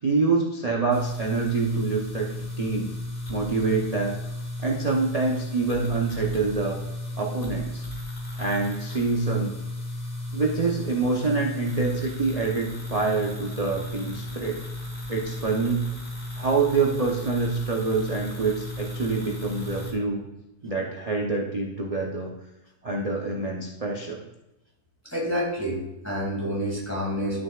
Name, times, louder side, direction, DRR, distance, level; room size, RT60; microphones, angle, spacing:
voice 1, 0.0-2.9 3.3-4.1 4.6-6.8 7.2-7.8 8.4-9.5 10.3-14.6 15.1-15.9 16.4-20.2 20.6-22.3 22.8-24.2, right 4 dB, 45° right, -1 dB, 0.5 m, -26 dB
sound 1, 0.9-19.9, left 1 dB, 30° left, 1.7 m, -34 dB
voice 2, 25.0-27.4, equal, 10° left, -3 dB, 2.0 m, -28 dB
11.5 x 6.4 x 2.4 m, 0.95 s
omnidirectional pair, 1.9 m